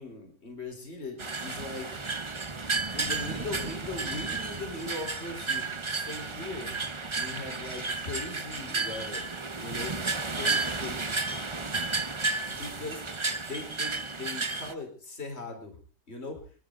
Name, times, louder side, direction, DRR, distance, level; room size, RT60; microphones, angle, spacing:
voice 1, 0.0-2.0 2.9-6.8 7.1-9.2 9.6-10.0 10.3-11.1 12.5-13.0 13.5-15.8 16.1-16.4, left 2 dB, 40° left, 3 dB, 4.8 m, -39 dB
sound 1, 1.2-14.7, right 3 dB, 25° right, 0.8 m, -32 dB
30.0 x 11.5 x 4.0 m, 0.39 s
omnidirectional pair, 1.8 m